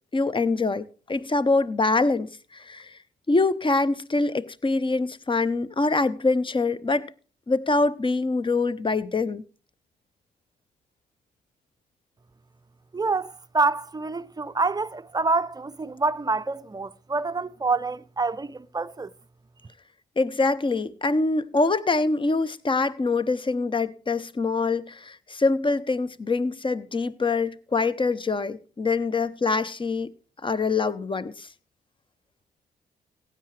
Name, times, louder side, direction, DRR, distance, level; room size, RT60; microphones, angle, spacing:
voice 1, 0.1-3.0 3.3-7.1 7.5-9.4 20.2-30.1 30.4-31.5, left 3 dB, 25° left, 0.8 m, -24 dB
voice 2, 12.9-19.1, right 3 dB, 20° right, 0.6 m, -27 dB
16.0 x 8.7 x 3.3 m
hypercardioid pair, 45°, 21 cm